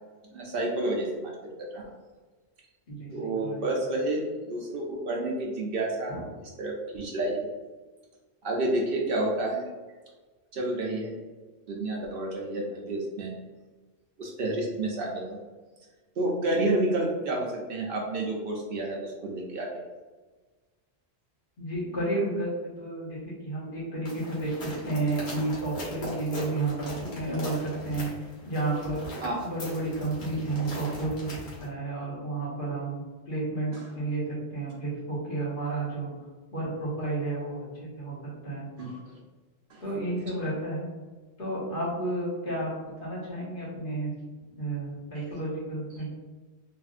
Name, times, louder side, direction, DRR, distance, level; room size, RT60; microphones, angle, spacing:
voice 1, 0.3-1.3 1.6-1.8 3.1-6.2 6.6-7.5 8.4-9.6 10.5-11.1 11.7-13.4 14.2-15.4 16.2-19.7 29.2-29.4 38.8-39.0 39.7-39.8, right 2 dB, 65° right, -1 dB, 0.7 m, -30 dB
voice 2, 2.9-3.7 6.1-6.2 21.6-29.1 29.4-31.3 31.6-36.1 36.5-38.1 38.4-38.6 39.8-40.9 41.4-42.7 43.0-44.1 44.6-46.1, right 2 dB, 50° left, -8 dB, 1.4 m, -31 dB
sound 1, 24.1-31.7, left 1 dB, 90° left, 1.3 m, -40 dB
3.5 x 2.4 x 2.4 m, 1.3 s
omnidirectional pair, 1.1 m